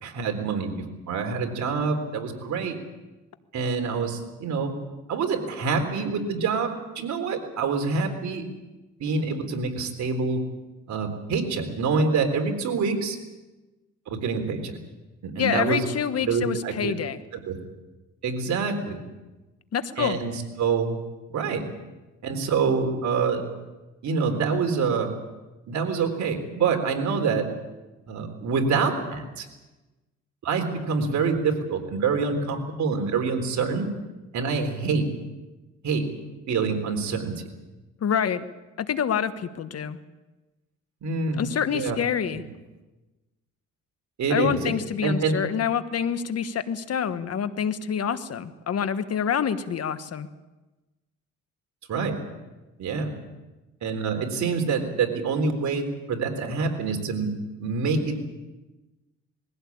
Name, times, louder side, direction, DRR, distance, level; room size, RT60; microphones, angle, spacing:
voice 1, 0.0-2.8 3.5-4.7 5.1-8.4 9.0-10.4 10.9-13.2 14.1-14.8 15.2-15.8 16.2-16.9 17.5-17.6 18.2-19.0 20.0-21.0 21.3-21.6 22.2-23.4 24.0-25.1 25.7-27.5 28.1-29.5 30.4-33.9 34.3-35.1 35.8-36.0 36.5-37.3 41.0-41.4 41.7-42.0 42.3-42.4 44.2-44.7 45.0-45.3 51.9-52.2 52.8-53.1 53.8-57.3 57.6-58.2, right 5 dB, 70° right, 4 dB, 3.9 m, -26 dB
voice 2, 15.4-17.2 19.7-20.2 38.0-38.5 38.8-40.0 41.4-42.4 44.3-50.3, left 8 dB, 55° left, 11 dB, 1.4 m, -27 dB
21.0 x 16.0 x 8.7 m, 1.1 s
cardioid pair, 90°, 30 cm